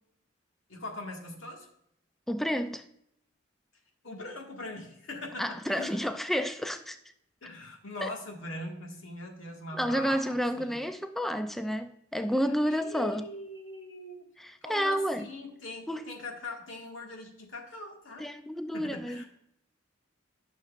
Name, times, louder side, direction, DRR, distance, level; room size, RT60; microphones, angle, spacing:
voice 1, 0.7-1.7 4.0-6.0 7.4-10.8 12.7-14.3 14.6-18.3 18.7-19.2, left 2 dB, 85° left, 1.8 m, -41 dB
voice 2, 2.3-2.9 5.4-7.0 8.0-8.1 9.7-13.3 14.4-15.3 15.9-16.0 18.2-19.2, equal, ahead, 0.3 m, -30 dB
11.5 x 6.1 x 2.5 m
head